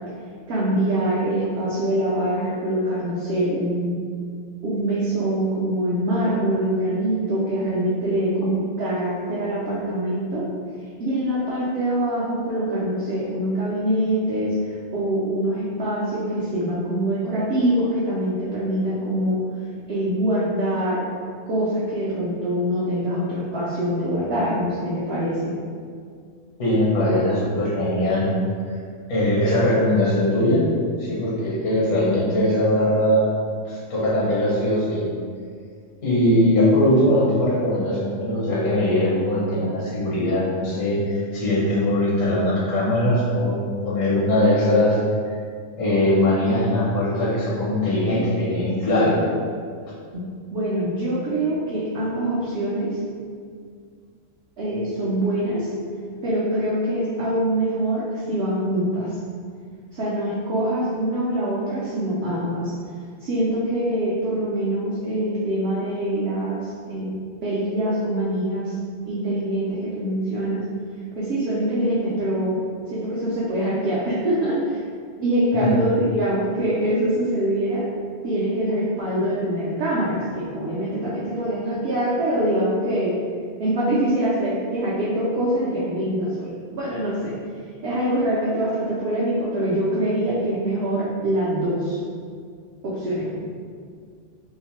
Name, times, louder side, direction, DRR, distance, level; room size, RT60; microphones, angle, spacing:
voice 1, 0.5-4.0 4.6-10.4 11.0-19.4 19.9-21.1 21.5-25.6 36.3-36.4 50.1-53.0 54.6-55.7 56.2-59.1 59.9-62.7 63.2-67.1 67.4-68.7 69.1-70.6 71.2-72.6 72.9-74.8 75.2-77.8 78.2-83.2 83.6-87.3 87.8-92.0 92.8-93.5, right 1 dB, 65° right, -8 dB, 0.7 m, -24 dB
voice 2, 26.6-28.3 29.1-30.6 31.0-33.3 33.6-35.0 36.0-43.6 43.8-45.0 45.8-49.2 65.7-65.8 75.5-75.8, left 1 dB, 70° left, -7 dB, 1.1 m, -20 dB
2.8 x 2.1 x 2.9 m, 2.1 s
omnidirectional pair, 1.3 m